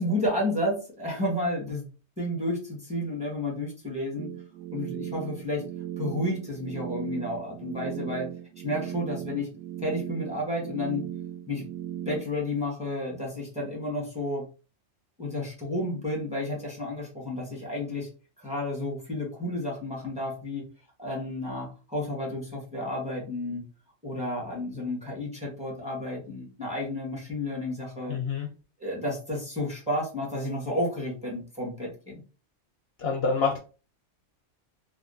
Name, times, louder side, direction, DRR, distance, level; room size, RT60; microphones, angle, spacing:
voice 1, 0.0-1.9 2.2-4.3 4.7-5.6 6.0-8.3 8.6-9.5 9.8-11.0 11.5-11.7 12.0-14.4 15.2-18.1 18.4-20.6 21.0-23.6 24.0-28.2 28.8-32.2, left 1 dB, 5° right, -2 dB, 1.2 m, -31 dB
sound 1, 4.2-12.2, right 11 dB, 80° right, 0.9 m, -37 dB
voice 2, 28.1-28.5 33.0-33.6, left 5 dB, 65° left, 0 dB, 0.7 m, -26 dB
3.5 x 2.6 x 2.6 m, 0.34 s
omnidirectional pair, 1.3 m